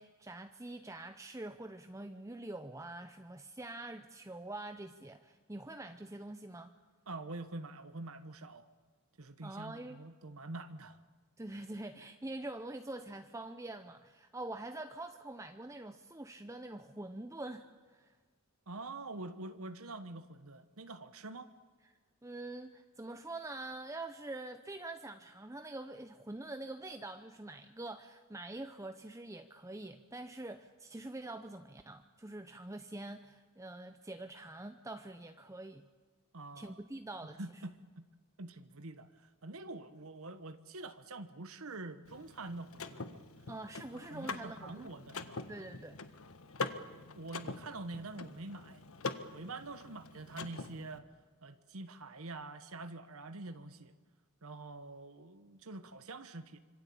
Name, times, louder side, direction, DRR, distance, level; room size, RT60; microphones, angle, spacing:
voice 1, 0.0-6.7 9.4-10.0 11.4-18.2 22.2-35.9 36.6-37.6 43.5-44.9 45.5-46.0, right 2 dB, 15° right, 8 dB, 0.8 m, -45 dB
voice 2, 7.1-8.7 9.2-11.0 18.7-21.5 36.3-36.8 37.4-38.0 38.4-43.2 44.1-45.7 46.6-48.9 49.3-51.0 51.4-53.9 54.4-56.6, right 2 dB, 70° right, 10 dB, 1.2 m, -46 dB
Car / Mechanisms, 42.0-51.0, left 3 dB, 65° left, 1.5 m, -44 dB
26.0 x 25.0 x 8.6 m, 1.5 s
head